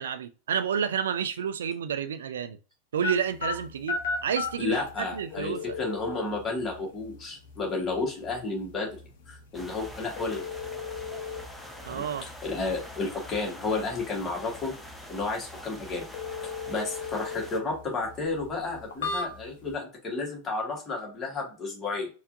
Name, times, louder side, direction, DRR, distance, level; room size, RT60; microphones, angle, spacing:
voice 1, 0.0-2.6 2.9-5.8 11.8-12.3, right 8 dB, 65° right, 0.3 m, -30 dB
sound 1, 3.0-19.7, left 4 dB, 60° left, 0.8 m, -38 dB
voice 2, 4.6-9.0 9.3-10.4 11.9-12.0 12.4-14.7 15.1-16.1 16.7-22.1, left 3 dB, 20° left, 1.6 m, -32 dB
sound 2, 9.5-17.6, equal, ahead, 0.7 m, -45 dB
4.3 x 2.4 x 2.6 m
figure-of-eight pair, 90°, 0 cm